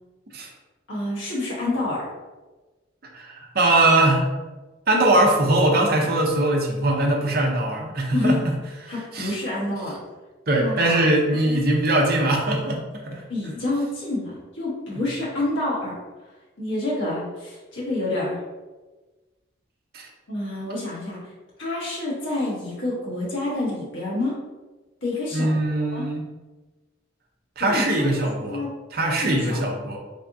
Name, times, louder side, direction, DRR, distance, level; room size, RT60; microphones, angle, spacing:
voice 1, 0.9-2.0 8.1-8.4 8.9-10.0 10.6-11.0 11.3-11.6 13.3-15.9 16.6-18.4 20.3-21.3 21.6-24.3 25.0-26.0 27.7-28.1 28.4-28.7 29.1-29.6, left 2 dB, 80° left, -6 dB, 1.1 m, -28 dB
voice 2, 3.1-4.3 4.9-8.4 8.8-9.4 10.5-13.2 19.9-20.1 25.3-26.3 27.6-28.6 28.9-30.0, right 1 dB, 55° right, 0 dB, 0.7 m, -21 dB
3.5 x 3.4 x 2.6 m, 1.2 s
head